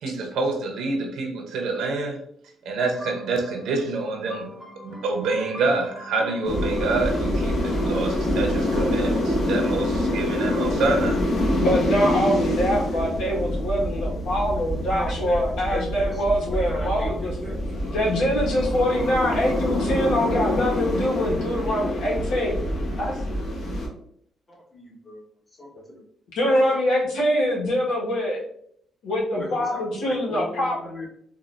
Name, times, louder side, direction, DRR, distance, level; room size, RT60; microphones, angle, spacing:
voice 1, 0.0-2.2 2.6-4.5 4.8-11.2, right 3 dB, 80° right, 2 dB, 0.8 m, -27 dB
sound 1, 2.9-8.1, left 1 dB, ahead, 1.1 m, -42 dB
sound 2, 6.4-23.9, left 1 dB, 50° left, 1.2 m, -26 dB
voice 2, 11.6-17.3 17.9-22.6 23.0-23.2 25.7-25.8 26.3-28.4 29.0-30.9, equal, 85° left, -5 dB, 1.4 m, -24 dB
voice 3, 14.9-17.6 24.5-25.2 25.6-25.7 26.4-26.5 29.4-31.1, left 1 dB, 25° left, -3 dB, 1.3 m, -37 dB
4.0 x 2.6 x 2.5 m, 0.67 s
cardioid pair, 90°, 0 cm